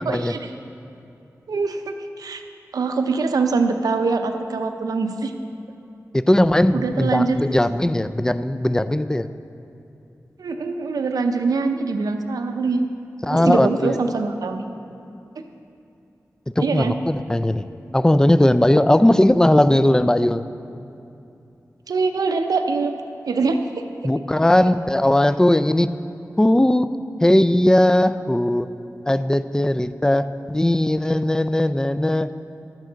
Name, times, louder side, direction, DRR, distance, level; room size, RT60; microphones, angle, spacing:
voice 1, 0.1-0.5 1.5-2.4 2.7-5.3 6.7-7.4 10.4-12.9 13.3-14.6 16.6-17.0 21.9-22.9 23.3-23.9, right 4 dB, 90° right, 6 dB, 0.6 m, -23 dB
voice 2, 6.1-9.3 13.2-14.0 16.6-17.7 17.9-20.4 24.0-25.9 26.4-27.0 27.2-28.7 29.1-32.3, left 1 dB, 10° left, 13 dB, 0.3 m, -18 dB
12.0 x 8.9 x 3.9 m, 2.7 s
cardioid pair, 50°, 6 cm